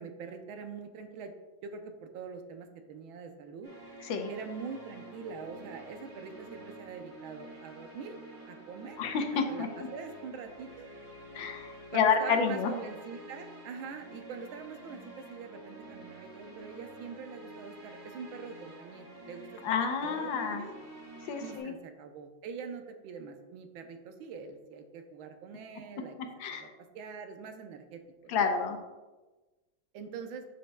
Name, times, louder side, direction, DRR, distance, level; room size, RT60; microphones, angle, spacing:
voice 1, 0.0-1.3 1.6-3.7 4.3-8.2 8.5-9.0 9.5-10.9 11.9-20.8 21.4-26.2 26.5-26.7 26.9-28.5 29.9-30.5, right 5 dB, 85° right, 6 dB, 1.5 m, -44 dB
sound 1, 3.6-21.6, right 1 dB, 30° right, 2.3 m, -49 dB
voice 2, 9.0-9.7 11.3-12.7 19.6-20.7 21.3-21.7 26.4-26.7 28.3-28.8, left 6 dB, 75° left, 5 dB, 1.5 m, -29 dB
11.0 x 5.3 x 2.2 m, 1.2 s
omnidirectional pair, 2.2 m